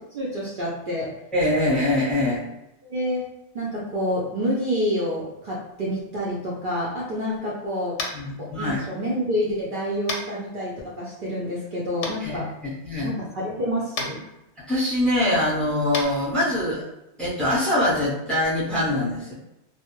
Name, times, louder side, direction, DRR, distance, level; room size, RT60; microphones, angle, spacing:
voice 1, 0.0-1.1 2.8-3.3 3.5-8.1 8.4-12.5 13.0-14.2, equal, 60° right, -6 dB, 0.6 m, -28 dB
voice 2, 1.3-2.4 8.1-8.9 12.2-13.1 14.6-16.8 17.2-19.3, left 1 dB, ahead, -8 dB, 0.6 m, -23 dB
Tap, 7.9-8.2 10.1-10.2 12.0-12.1 13.9-14.1 15.9-16.0, left 3 dB, 85° left, 0.9 m, -29 dB
2.2 x 2.0 x 2.9 m, 0.88 s
omnidirectional pair, 1.2 m